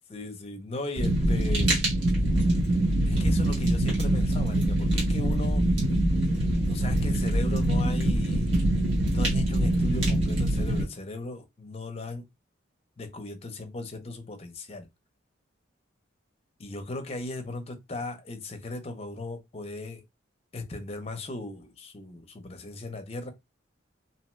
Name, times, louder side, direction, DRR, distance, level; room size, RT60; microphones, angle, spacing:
voice 1, 0.1-1.8 3.1-5.6 6.7-8.5 9.1-12.3 13.0-14.9 16.6-20.0 20.5-23.3, left 2 dB, 30° left, 0.5 m, -37 dB
Fire, 1.0-10.8, right 1 dB, 60° right, 1.4 m, -24 dB
2.7 x 2.2 x 3.0 m
head